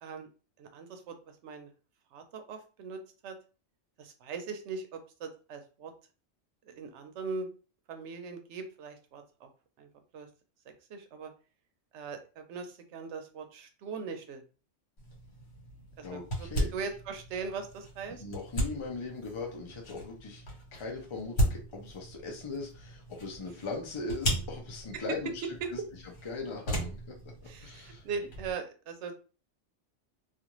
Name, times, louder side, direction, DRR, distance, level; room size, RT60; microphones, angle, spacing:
voice 1, 0.6-1.7 2.1-3.3 4.0-5.9 6.6-7.5 7.9-9.5 9.8-9.9 10.1-10.3 10.9-11.3 11.9-14.4 16.0-18.2 24.9-25.0 27.4-29.1, right 5 dB, 75° right, 6 dB, 0.8 m, -40 dB
sound 1, 15.0-28.5, equal, 75° left, 1.3 m, -37 dB
voice 2, 16.0-16.7 18.2-20.4 20.7-25.3 26.2-27.0 27.6-28.0, left 3 dB, 45° left, 0 dB, 0.4 m, -39 dB
2.4 x 2.4 x 2.9 m, 0.36 s
omnidirectional pair, 1.2 m